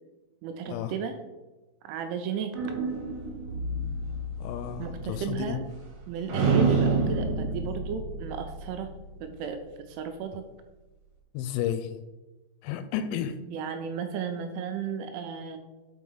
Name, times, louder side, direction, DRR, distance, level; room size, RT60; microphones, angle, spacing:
voice 1, 0.4-1.1 1.8-2.5 4.8-5.6 6.1-8.9 9.2-9.6 9.9-10.5 13.5-15.6, right 7 dB, 85° right, 6 dB, 2.8 m, -34 dB
sound 1, 2.5-6.0 6.3-9.0, right 3 dB, 55° right, 2.2 m, -29 dB
voice 2, 4.4-5.6 11.3-12.0 12.6-13.4, left 9 dB, 85° left, 10 dB, 2.9 m, -32 dB
6.2 x 5.5 x 5.5 m, 1.1 s
omnidirectional pair, 5.9 m